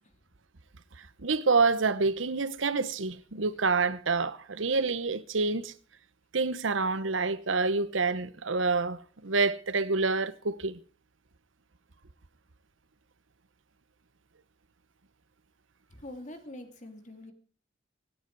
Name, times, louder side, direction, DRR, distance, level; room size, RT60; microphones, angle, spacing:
voice 1, 1.2-5.7 6.3-10.8, right 4 dB, 90° right, 1.0 m, -27 dB
voice 2, 15.9-17.3, left 1 dB, 40° left, 2.9 m, -44 dB
24.5 x 9.7 x 4.7 m
head